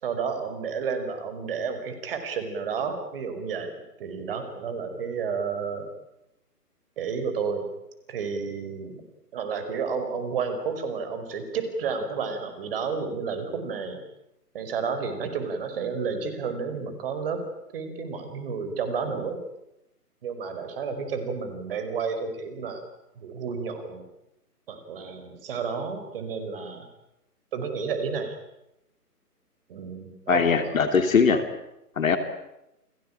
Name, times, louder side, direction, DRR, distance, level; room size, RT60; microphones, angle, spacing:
voice 1, 0.0-5.9 7.0-7.7 8.1-9.0 9.3-14.0 14.5-17.4 17.7-19.4 20.2-22.8 23.2-24.0 24.7-26.9 27.5-28.4 29.7-30.8 31.3-31.4, right 5 dB, 35° right, 8 dB, 5.2 m, -31 dB
voice 2, 30.3-31.4 32.0-32.2, left 6 dB, 55° left, 8 dB, 3.1 m, -21 dB
29.5 x 20.0 x 8.9 m, 0.89 s
figure-of-eight pair, 145°, 48 cm